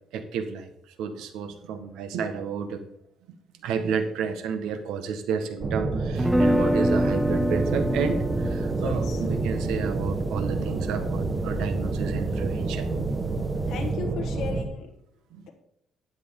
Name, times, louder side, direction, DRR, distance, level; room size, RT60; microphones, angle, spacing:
voice 1, 0.1-0.7 1.0-2.8 3.3-3.4 3.6-12.9 15.3-15.4, right 6 dB, 90° right, 8 dB, 1.3 m, -31 dB
sound 1, 5.6-14.6, right 3 dB, 30° right, 1.3 m, -28 dB
sound 2, 6.2-12.2, equal, 5° right, 0.5 m, -27 dB
voice 2, 8.7-9.2 13.7-14.9, left 6 dB, 70° left, 2 dB, 1.4 m, -35 dB
12.5 x 9.4 x 3.7 m, 0.72 s
cardioid pair, 125°, 0 cm